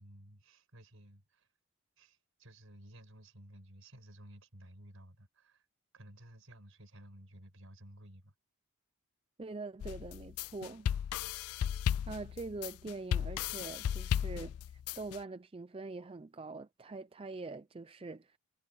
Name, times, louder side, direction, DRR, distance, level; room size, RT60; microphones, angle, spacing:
voice 1, 0.0-1.5 2.0-5.6 5.9-8.3 11.3-11.4, right 1 dB, 65° right, 5.0 m, -55 dB
voice 2, 9.4-10.9 12.1-18.4, right 3 dB, 25° right, 0.4 m, -44 dB
sound 1, 9.8-15.2, left 9 dB, 80° left, 0.3 m, -35 dB
head